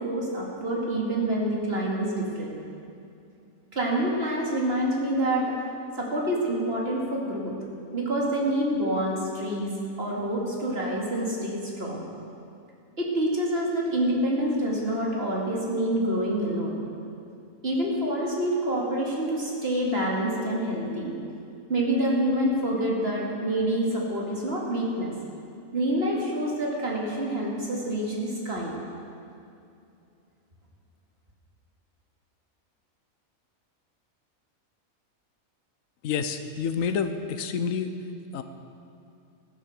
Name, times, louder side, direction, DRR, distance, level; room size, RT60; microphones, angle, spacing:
voice 1, 0.0-2.5 3.7-5.6 6.0-7.5 7.9-9.7 10.0-12.0 13.0-16.8 17.6-21.2 21.7-25.1 25.7-28.7, right 1 dB, 45° right, -3 dB, 2.6 m, -27 dB
voice 2, 36.0-37.9 38.3-38.4, left 6 dB, 70° left, 9 dB, 1.1 m, -28 dB
14.0 x 10.0 x 6.6 m, 2.6 s
omnidirectional pair, 1.5 m